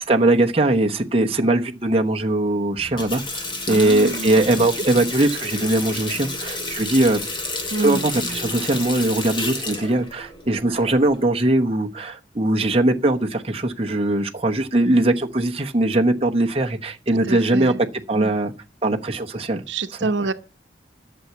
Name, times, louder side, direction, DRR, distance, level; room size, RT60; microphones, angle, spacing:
voice 1, 0.1-7.2 7.8-17.7 18.1-18.5 18.8-19.6 20.0-20.1, right 2 dB, 30° right, 1.0 m, -20 dB
Water tap faucet, 2.8-11.2, left 2 dB, 25° left, 2.5 m, -30 dB
voice 2, 3.7-4.7 7.7-8.1 17.3-17.8 18.1-18.3 19.7-20.3, right 3 dB, 75° right, 1.0 m, -27 dB
11.0 x 7.1 x 8.3 m
head